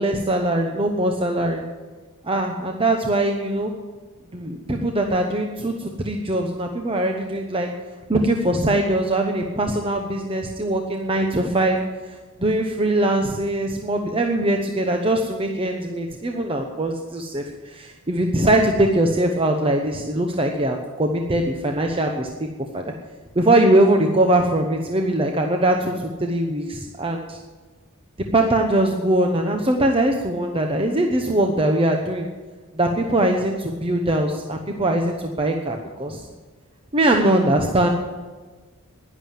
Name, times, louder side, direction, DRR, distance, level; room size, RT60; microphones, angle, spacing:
voice 1, 0.0-1.6 2.3-3.7 4.3-7.7 8.1-11.8 12.4-22.5 22.7-22.8 23.4-27.4 28.3-32.3 32.8-36.2 36.9-37.9, right 1 dB, 25° right, 3 dB, 1.0 m, -21 dB
11.0 x 10.5 x 9.1 m, 1.3 s
head